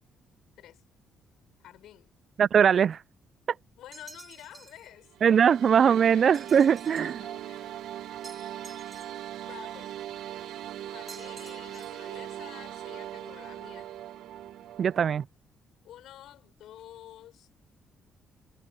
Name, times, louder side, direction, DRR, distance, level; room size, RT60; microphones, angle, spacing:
voice 1, 1.6-2.1 3.8-5.4 5.8-6.6 6.9-7.8 9.4-9.9 10.9-13.9 15.8-17.5, left 12 dB, 80° left, 7.0 m, -50 dB
voice 2, 2.4-3.0 5.2-7.2 14.8-15.2, right 7 dB, 55° right, 0.3 m, -21 dB
sound 1, 3.9-4.9 6.3-7.2 8.2-9.4 11.1-12.1, right 4 dB, 35° right, 5.8 m, -50 dB
sound 2, 5.1-15.2, right 12 dB, 80° right, 1.1 m, -40 dB
cardioid pair, 90°, 0 cm